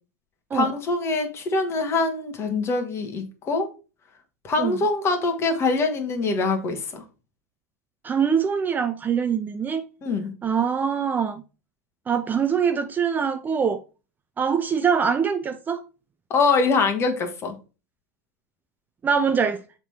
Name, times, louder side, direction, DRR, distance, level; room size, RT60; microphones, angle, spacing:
voice 1, 0.5-3.7 4.4-7.0 10.0-10.3 16.3-17.6, left 3 dB, 30° left, 1.7 m, -24 dB
voice 2, 8.0-9.8 10.4-11.4 12.1-13.8 14.4-15.8 19.0-19.6, right 7 dB, 20° right, 0.5 m, -23 dB
7.0 x 3.7 x 4.4 m
hypercardioid pair, 90°, 9 cm